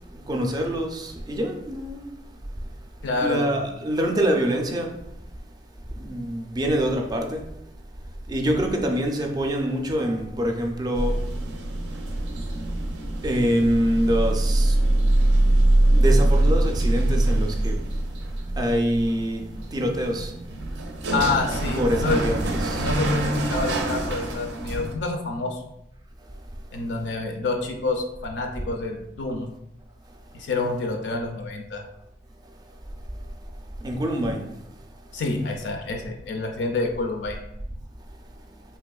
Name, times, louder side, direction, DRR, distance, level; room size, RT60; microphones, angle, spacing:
voice 1, 0.1-2.1 3.2-4.9 6.0-7.4 8.3-11.2 13.2-14.8 15.9-17.8 18.6-20.3 21.8-22.9 33.8-34.5, equal, 20° right, 0.4 m, -25 dB
voice 2, 3.0-3.5 21.1-22.2 22.7-25.6 26.7-29.5 30.3-31.8 35.1-37.4, left 3 dB, 70° left, 0.4 m, -27 dB
sound 1, 10.9-24.9, right 1 dB, 85° right, 0.5 m, -23 dB
3.3 x 2.9 x 2.3 m
head